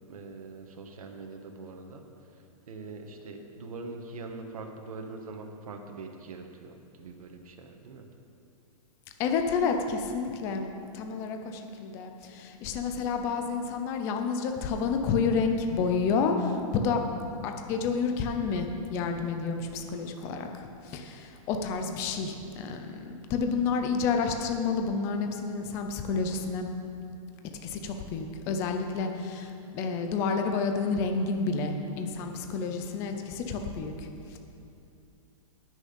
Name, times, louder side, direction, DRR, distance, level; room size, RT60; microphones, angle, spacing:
voice 1, 0.1-8.1, right 3 dB, 85° right, 3 dB, 1.3 m, -43 dB
voice 2, 9.2-10.7 10.9-17.0 17.4-26.7 27.6-34.4, left 5 dB, 15° left, 5 dB, 0.4 m, -30 dB
17.0 x 6.3 x 5.2 m, 2.6 s
supercardioid pair, 175°, 18 cm